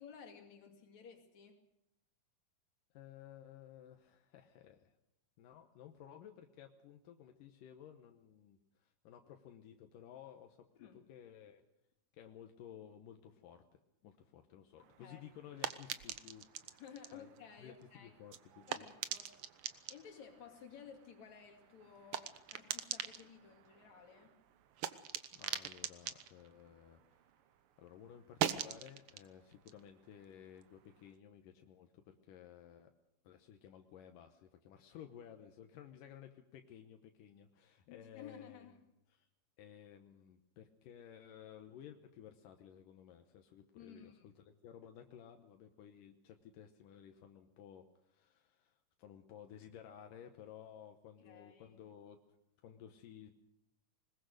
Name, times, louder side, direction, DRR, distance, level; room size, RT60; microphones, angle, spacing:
voice 1, 0.0-1.6 10.8-11.0 14.0-14.2 14.8-15.2 16.8-18.1 18.7-19.4 19.9-24.4 37.9-38.8 43.7-44.3 51.3-51.8, left 7 dB, 60° left, 2 dB, 3.6 m, -55 dB
voice 2, 2.9-4.9 5.4-11.6 12.1-13.6 14.0-16.5 17.1-17.3 17.6-18.9 25.3-27.2 27.8-32.9 33.2-38.7 39.1-39.3 39.6-44.1 44.5-52.2 52.6-53.3, left 9 dB, 85° left, 5 dB, 2.7 m, -55 dB
sound 1, 14.8-27.6 27.9-31.1, right 10 dB, 80° right, 1.2 m, -44 dB
21.0 x 20.5 x 6.5 m, 0.85 s
omnidirectional pair, 3.7 m